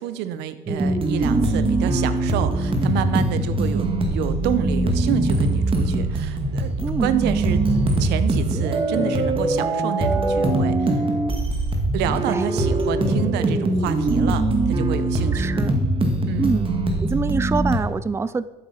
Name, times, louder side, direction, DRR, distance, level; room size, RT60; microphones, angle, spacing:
voice 1, 0.0-6.7 7.0-11.0 11.9-15.5 16.3-16.5, right 10 dB, 90° right, 12 dB, 0.9 m, -29 dB
sound 1, 0.7-17.8, right 2 dB, 30° right, 2.1 m, -22 dB
voice 2, 6.8-7.2 12.3-12.4 15.3-15.8 16.4-16.7 17.0-18.4, right 4 dB, 15° right, 16 dB, 0.4 m, -25 dB
13.0 x 8.0 x 5.8 m, 1.1 s
cardioid pair, 110°, 17 cm